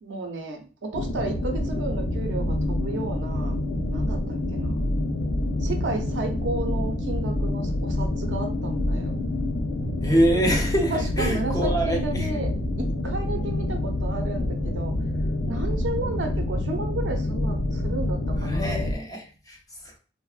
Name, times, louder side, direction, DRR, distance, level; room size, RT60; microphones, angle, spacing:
voice 1, 0.0-3.6 3.9-4.8 5.6-9.1 10.9-14.9 15.5-18.9, right 3 dB, 80° right, 4 dB, 0.5 m, -33 dB
sound 1, 0.9-18.9, left 1 dB, 80° left, 0.4 m, -27 dB
voice 2, 10.0-12.4 18.4-20.0, equal, 20° left, 1 dB, 0.6 m, -25 dB
3.2 x 2.0 x 2.3 m, 0.37 s
head